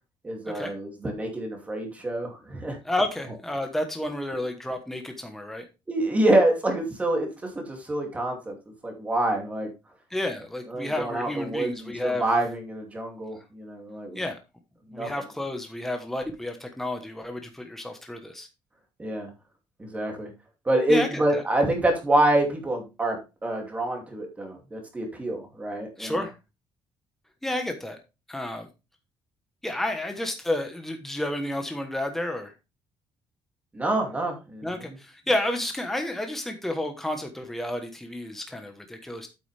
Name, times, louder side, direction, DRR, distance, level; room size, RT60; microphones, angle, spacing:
voice 1, 0.2-2.8 5.9-7.3 7.5-8.6 8.8-9.7 10.7-14.2 14.9-15.1 19.0-19.3 19.8-20.3 20.7-26.2 33.7-34.9, right 1 dB, 15° right, 2 dB, 2.5 m, -26 dB
voice 2, 2.8-5.6 10.1-12.2 14.1-14.4 14.9-18.5 20.9-21.4 26.0-26.3 27.4-28.0 28.3-28.7 29.6-32.5 34.6-39.3, left 1 dB, 5° left, 4 dB, 1.1 m, -31 dB
8.6 x 8.3 x 3.3 m, 0.27 s
cardioid pair, 175°, 9 cm